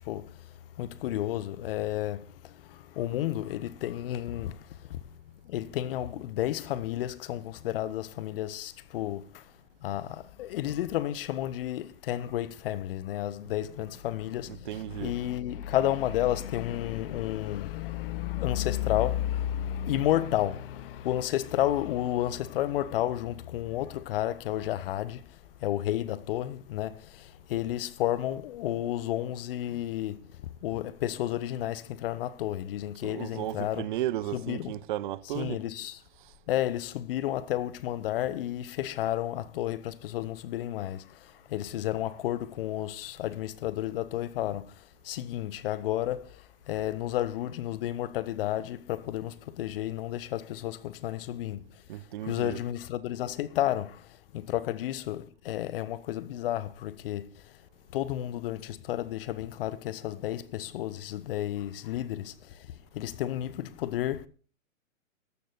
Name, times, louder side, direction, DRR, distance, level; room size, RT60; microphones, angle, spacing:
voice 1, 0.8-2.2 3.0-4.5 5.5-9.2 9.8-10.1 10.4-25.2 25.6-26.9 27.5-30.2 30.6-33.9 34.3-34.7 35.3-36.0 36.5-41.0 41.5-44.6 45.1-46.2 46.7-51.6 52.2-53.9 54.5-57.2 57.9-62.3 62.9-64.2, left 13 dB, 45° left, 0.9 m, -31 dB
voice 2, 14.4-15.2 33.0-35.6 51.9-52.6, right 13 dB, 40° right, 0.6 m, -34 dB
14.0 x 11.5 x 4.1 m
hypercardioid pair, 125°, 40 cm